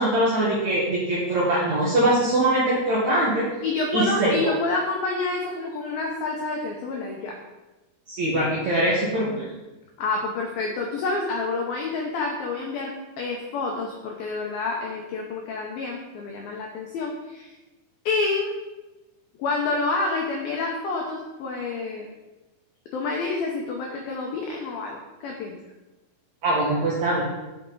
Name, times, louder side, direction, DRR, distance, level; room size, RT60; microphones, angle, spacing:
voice 1, 0.0-3.5 3.9-4.5 8.1-9.4 26.4-27.2, right 1 dB, 65° right, -7 dB, 1.8 m, -22 dB
voice 2, 3.6-7.4 10.0-17.5 18.1-18.5 19.4-22.1 22.9-25.6, left 3 dB, 90° left, 0 dB, 2.0 m, -28 dB
10.5 x 5.9 x 3.9 m, 1.1 s
omnidirectional pair, 5.5 m